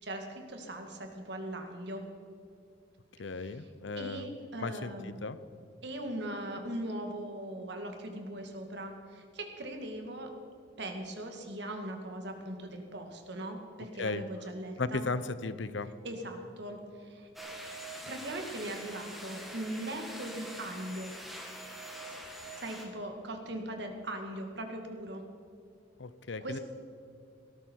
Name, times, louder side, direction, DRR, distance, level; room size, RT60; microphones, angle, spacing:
voice 1, 0.0-2.0 3.3-3.7 4.0-5.1 5.8-10.3 10.8-15.1 16.0-17.3 18.1-21.1 22.1-25.2 26.4-26.6, right 1 dB, 65° right, 4 dB, 2.1 m, -40 dB
voice 2, 3.2-4.3 4.6-5.4 14.0-14.2 14.8-15.9 26.0-26.6, left 3 dB, 75° left, 14 dB, 0.7 m, -35 dB
sound 1, 17.4-22.9, right 1 dB, ahead, 1.9 m, -44 dB
18.5 x 13.0 x 4.6 m, 2.4 s
head